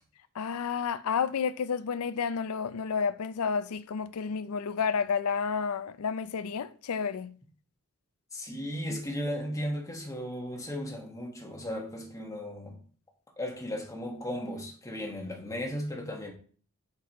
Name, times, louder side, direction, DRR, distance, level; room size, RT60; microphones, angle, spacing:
voice 1, 0.4-7.3 8.9-9.0, left 6 dB, 75° left, 0.5 m, -31 dB
voice 2, 8.3-12.7 13.4-16.3, equal, 15° left, 1.5 m, -36 dB
7.1 x 6.1 x 3.0 m
head